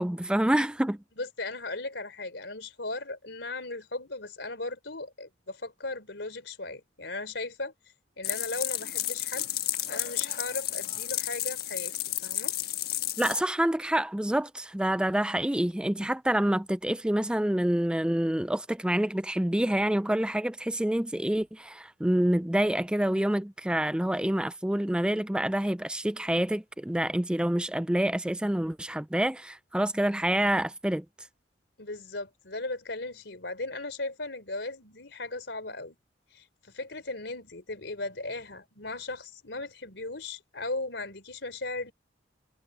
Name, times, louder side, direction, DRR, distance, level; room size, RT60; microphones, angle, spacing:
voice 1, 0.0-1.0 13.2-31.0, right 1 dB, 5° right, 0.4 m, -27 dB
voice 2, 1.2-7.7 8.2-9.5 9.9-11.9 12.2-12.5 31.8-36.0 36.3-41.9, left 2 dB, 75° left, 3.6 m, -37 dB
sound 1, 8.2-13.4, left 13 dB, 60° left, 1.4 m, -32 dB
head